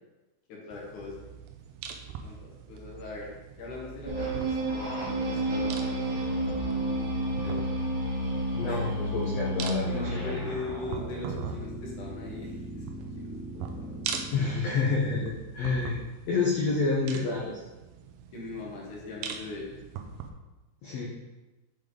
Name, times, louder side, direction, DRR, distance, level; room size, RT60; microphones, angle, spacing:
voice 1, 0.5-1.2 2.0-3.3 3.6-7.7 8.7-8.9 9.8-12.9 13.2-14.0 18.3-19.8, left 3 dB, 60° left, -3 dB, 2.5 m, -41 dB
sound 1, 0.7-20.3, right 7 dB, 90° right, 2.6 m, -42 dB
sound 2, 4.1-10.6, right 1 dB, 60° right, 3.2 m, -30 dB
voice 2, 8.5-10.4 14.3-16.0 16.3-17.6 20.8-21.1, left 4 dB, 80° left, -4 dB, 1.5 m, -28 dB
sound 3, 9.9-14.7, equal, 10° right, 1.4 m, -40 dB
7.7 x 5.2 x 3.9 m, 1.1 s
omnidirectional pair, 4.4 m